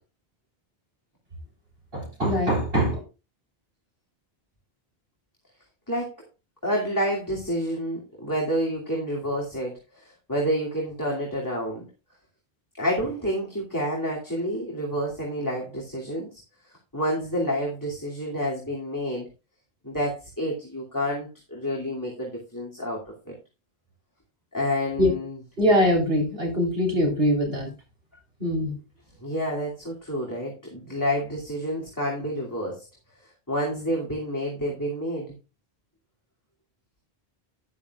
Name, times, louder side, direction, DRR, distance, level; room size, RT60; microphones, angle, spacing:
voice 1, 1.9-3.0 25.0-25.1 25.6-27.7 28.4-28.7, equal, 70° right, 1 dB, 3.9 m, -22 dB
voice 2, 6.6-11.9 12.8-16.3 16.9-19.3 19.8-23.0 23.3-23.4 24.5-25.4 29.2-32.9 33.5-35.3, equal, 20° left, -3 dB, 2.5 m, -29 dB
12.5 x 10.5 x 2.4 m, 0.29 s
omnidirectional pair, 1.0 m